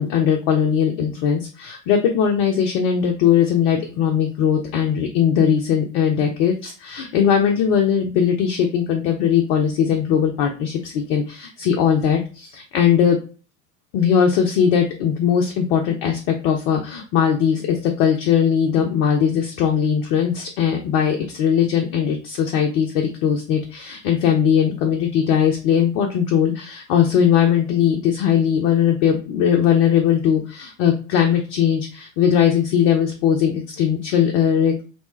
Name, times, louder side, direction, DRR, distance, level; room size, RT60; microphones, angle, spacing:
voice 1, 0.0-13.2 13.9-34.8, left 8 dB, 45° left, 2 dB, 0.5 m, -19 dB
2.9 x 2.1 x 3.1 m, 0.36 s
figure-of-eight pair, 75°, 40 cm